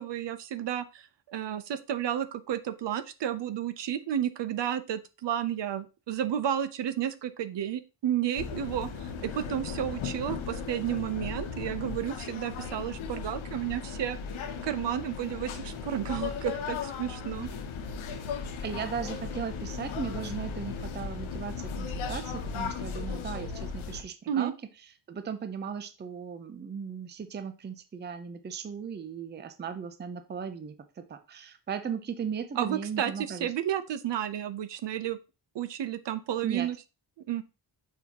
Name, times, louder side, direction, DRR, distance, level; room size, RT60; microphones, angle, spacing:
voice 1, 0.0-14.2 14.6-17.5 24.3-24.5 32.6-35.2 35.5-36.8 37.3-37.4, right 10 dB, 60° right, 13 dB, 0.7 m, -32 dB
sound 1, 8.4-24.0, left 6 dB, 80° left, 1.1 m, -36 dB
voice 2, 18.6-24.5 25.1-33.5 36.4-36.7, right 7 dB, 25° right, 10 dB, 0.5 m, -37 dB
7.1 x 5.5 x 2.9 m, 0.30 s
wide cardioid pair, 170°, 48 cm